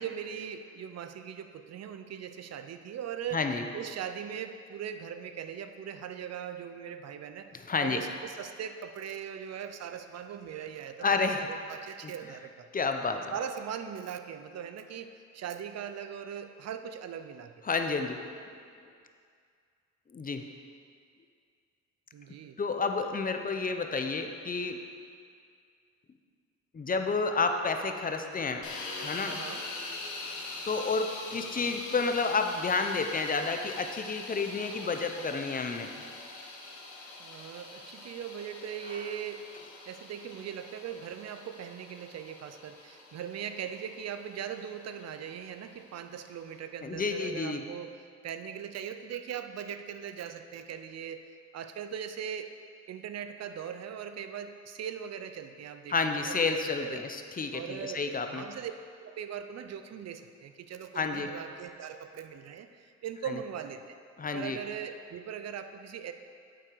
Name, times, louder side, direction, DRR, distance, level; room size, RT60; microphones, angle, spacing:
voice 1, 0.0-3.4 3.7-7.5 7.8-12.7 13.3-17.5 22.1-22.6 29.2-29.6 37.2-39.4 39.9-47.9 48.2-52.5 52.9-57.0 57.5-58.7 59.0-64.0 64.3-66.1, right 8 dB, 60° right, 9 dB, 0.7 m, -40 dB
voice 2, 3.3-3.6 7.5-8.0 11.0-11.5 12.0-12.1 12.7-13.3 17.6-18.2 20.1-20.5 22.6-24.9 26.7-28.7 29.0-29.4 30.7-35.9 46.8-47.6 55.9-58.5 60.9-61.3 64.2-64.6, left 4 dB, 30° left, 6 dB, 0.8 m, -30 dB
sound 1, 28.6-46.6, left 3 dB, 75° left, 1.8 m, -44 dB
9.0 x 7.8 x 4.7 m, 2.2 s
cardioid pair, 90°, 30 cm